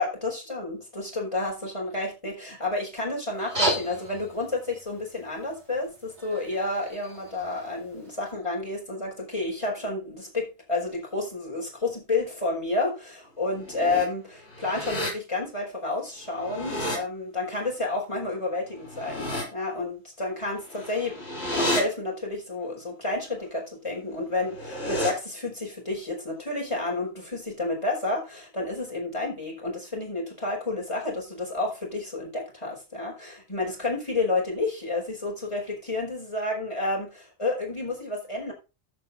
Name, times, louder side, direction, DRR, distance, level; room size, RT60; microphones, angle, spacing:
voice 1, 0.0-38.5, left 2 dB, 25° left, -1 dB, 5.0 m, -30 dB
sound 1, 3.3-8.3, equal, 70° right, 6.4 m, -34 dB
sound 2, 13.5-14.1 14.5-15.1 16.2-17.0 18.8-19.4 20.7-21.8 24.3-25.1, left 1 dB, 65° left, 4.4 m, -31 dB
14.5 x 5.8 x 4.2 m, 0.28 s
omnidirectional pair, 1.2 m